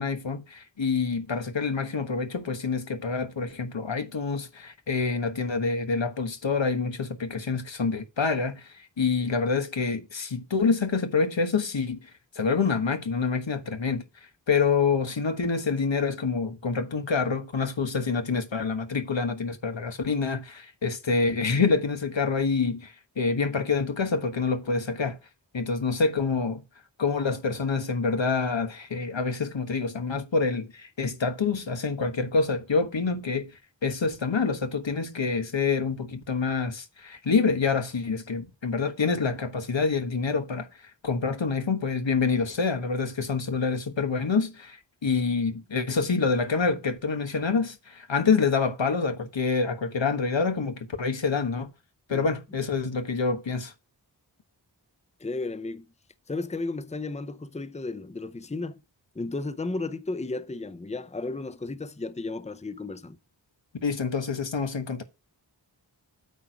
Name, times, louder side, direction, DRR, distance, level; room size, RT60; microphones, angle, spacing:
voice 1, 0.0-12.1 12.3-14.0 14.5-25.2 25.5-26.6 27.0-40.7 41.0-51.7 52.1-53.7 63.8-65.0, left 4 dB, 90° left, 1.3 m, -27 dB
voice 2, 55.2-55.9 56.3-58.8 59.2-63.2, left 3 dB, 15° left, 0.7 m, -34 dB
8.6 x 4.5 x 5.1 m
wide cardioid pair, 45°, 44 cm